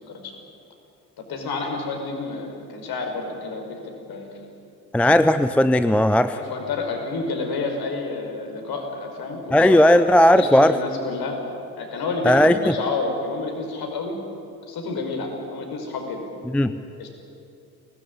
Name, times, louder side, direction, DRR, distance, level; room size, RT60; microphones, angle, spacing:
voice 1, 0.1-0.4 1.3-4.4 6.3-10.0 10.4-11.4 11.8-14.2 14.6-16.2 17.0-17.1, left 3 dB, 45° left, 3 dB, 5.4 m, -29 dB
voice 2, 4.9-6.4 9.5-10.8 12.2-12.8 16.5-16.7, left 1 dB, 5° left, 11 dB, 0.7 m, -16 dB
24.0 x 19.5 x 10.0 m, 2.6 s
figure-of-eight pair, 55°, 49 cm